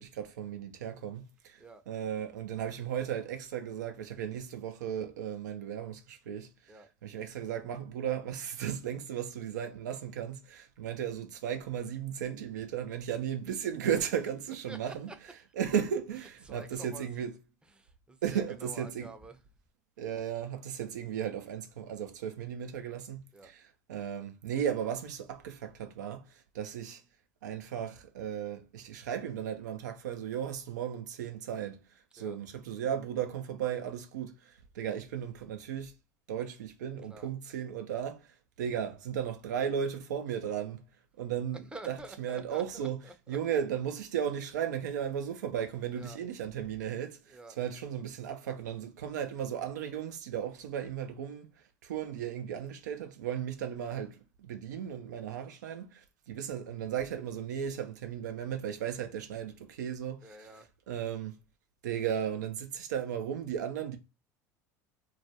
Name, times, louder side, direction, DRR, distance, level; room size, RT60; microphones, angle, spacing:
voice 1, 0.0-6.5 7.0-15.1 15.6-17.3 18.2-19.1 20.0-23.6 23.9-26.2 26.5-27.0 27.4-31.8 32.1-35.9 36.3-38.3 38.6-40.8 41.2-43.0 43.3-51.5 51.8-60.5 60.9-61.3 61.8-64.0, right 9 dB, 80° right, 0.4 m, -35 dB
voice 2, 14.7-15.2 16.4-17.3 17.7-19.4 23.3-23.5 32.2-32.4 37.1-37.3 41.7-43.4 45.9-46.2 47.3-47.6 60.2-60.7, right 2 dB, 10° right, 0.5 m, -49 dB
2.3 x 2.0 x 2.7 m
hypercardioid pair, 75°, 9 cm